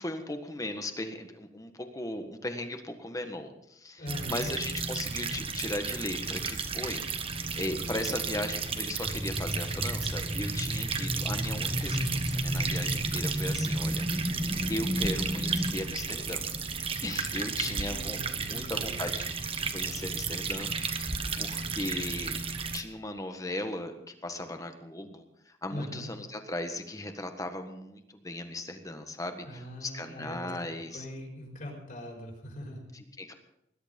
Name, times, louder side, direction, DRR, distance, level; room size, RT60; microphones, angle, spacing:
voice 1, 0.0-19.3 19.6-22.4 22.7-31.1 32.9-33.3, left 1 dB, 20° left, 6 dB, 1.5 m, -37 dB
voice 2, 4.0-4.5 17.2-19.1 25.7-26.1 29.4-30.5 30.9-32.8, equal, 50° left, 0 dB, 5.0 m, -41 dB
sound 1, 4.1-22.8, right 5 dB, 30° right, 1.2 m, -34 dB
sound 2, 9.0-15.8, equal, 10° right, 1.1 m, -32 dB
20.5 x 11.5 x 5.3 m, 0.81 s
head